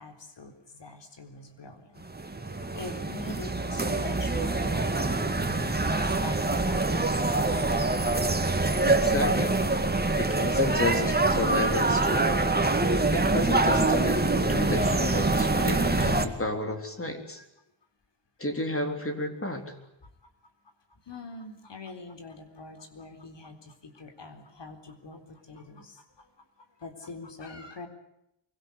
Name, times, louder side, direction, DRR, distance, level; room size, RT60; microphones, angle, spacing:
voice 1, 0.0-2.0 2.7-5.2 6.0-7.3 10.7-11.0 17.1-17.4 20.2-20.3 20.9-27.9, left 3 dB, 70° left, 7 dB, 4.0 m, -44 dB
sound 1, 2.0-16.3, right 2 dB, 20° right, 2.3 m, -25 dB
voice 2, 8.9-9.5 10.1-12.4 13.1-17.4 18.4-19.8, left 1 dB, 30° left, 5 dB, 3.8 m, -32 dB
25.0 x 23.5 x 8.2 m, 0.82 s
wide cardioid pair, 120°, 45 cm